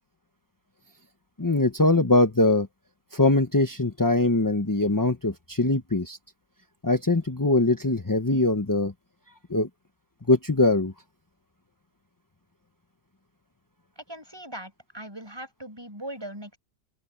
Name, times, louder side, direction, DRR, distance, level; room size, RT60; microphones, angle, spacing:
voice 1, 1.4-2.7 3.1-6.2 6.8-8.9 9.5-9.7 10.3-10.9, left 2 dB, 15° left, 0.7 m, -22 dB
voice 2, 14.0-16.6, right 1 dB, 15° right, 6.6 m, -40 dB
open air
omnidirectional pair, 2.0 m